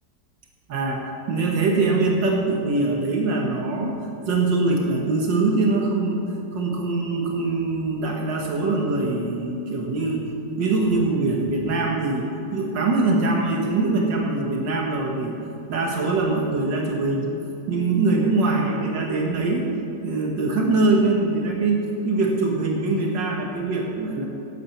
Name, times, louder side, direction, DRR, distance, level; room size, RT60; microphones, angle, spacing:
voice 1, 0.7-3.9 4.3-6.2 6.5-10.3 10.6-15.4 15.7-17.3 17.7-19.7 20.0-24.3, right 3 dB, 85° right, 0 dB, 2.0 m, -23 dB
11.0 x 8.6 x 7.2 m, 2.8 s
omnidirectional pair, 1.9 m